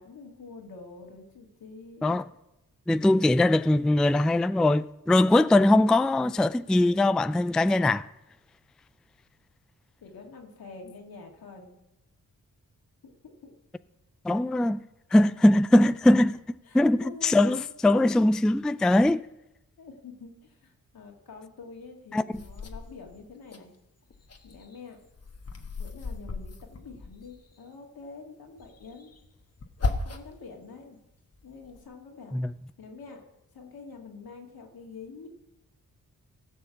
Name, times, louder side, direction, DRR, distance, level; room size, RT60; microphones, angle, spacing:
voice 1, 0.0-2.2 10.0-11.8 13.0-13.5 16.6-17.6 19.8-23.7 24.4-25.0 25.8-29.1 29.8-31.0 31.4-32.4 32.8-33.2 33.5-35.3, left 4 dB, 75° left, 2.2 m, -46 dB
voice 2, 2.9-8.1 14.2-14.8 15.1-19.2 22.1-22.2 32.3-32.5, left 1 dB, ahead, 0.3 m, -21 dB
sound 1, 22.3-23.6 24.0-27.6 28.6-30.5 30.9-31.8, left 3 dB, 40° left, 1.2 m, -36 dB
16.0 x 5.6 x 7.0 m
supercardioid pair, 40°, 36 cm